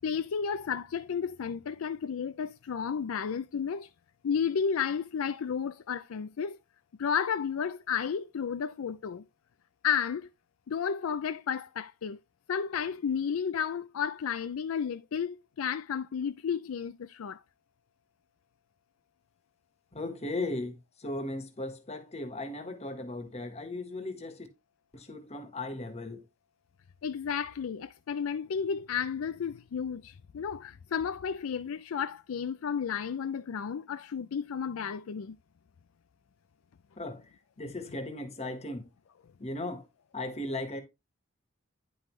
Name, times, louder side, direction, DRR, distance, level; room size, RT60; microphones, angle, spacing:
voice 1, 0.0-3.9 4.2-6.6 7.0-9.2 9.8-10.3 10.7-12.2 12.5-17.4 27.0-35.4, left 7 dB, 80° left, 0.4 m, -32 dB
voice 2, 19.9-24.5 24.9-26.2 37.0-37.2 37.6-38.9 39.4-39.8 40.1-40.8, left 2 dB, 30° left, 1.4 m, -37 dB
9.9 x 5.4 x 3.1 m
head